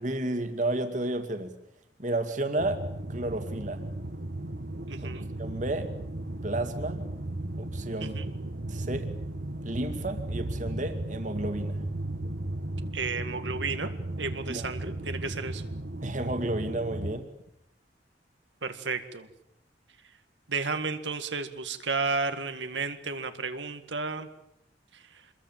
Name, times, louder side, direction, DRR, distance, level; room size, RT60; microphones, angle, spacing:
voice 1, 0.0-1.5 2.0-2.8 3.1-3.8 5.0-5.1 5.4-5.9 6.4-7.0 7.6-8.2 8.7-9.1 9.6-11.8 14.5-14.7 16.0-17.3, right 1 dB, 45° right, 8 dB, 2.3 m, -32 dB
sound 1, 2.6-17.2, right 1 dB, 60° right, 1.5 m, -35 dB
voice 2, 4.9-5.3 8.0-8.3 12.9-13.9 14.2-15.6 18.6-19.3 20.5-24.3, right 4 dB, 90° right, 8 dB, 2.0 m, -32 dB
27.0 x 22.0 x 7.5 m, 0.80 s
head